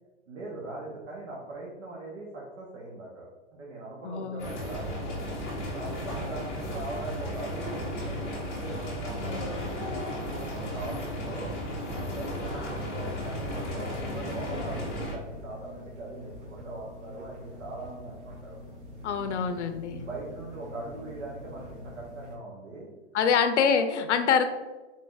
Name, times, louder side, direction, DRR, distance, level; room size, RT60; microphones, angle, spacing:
voice 1, 0.3-5.2 5.6-9.7 10.1-11.5 11.9-18.6 19.2-19.3 19.9-22.9 23.3-23.4, right 2 dB, 80° right, -5 dB, 1.3 m, -41 dB
voice 2, 4.0-4.5 9.2-9.5 19.0-20.0 23.1-24.4, left 6 dB, 70° left, 8 dB, 0.5 m, -25 dB
sound 1, 4.4-15.1, equal, 15° left, 0.6 m, -34 dB
sound 2, 13.0-22.3, left 1 dB, 45° right, 1.1 m, -45 dB
3.9 x 2.4 x 3.8 m, 1.2 s
hypercardioid pair, 165°, 36 cm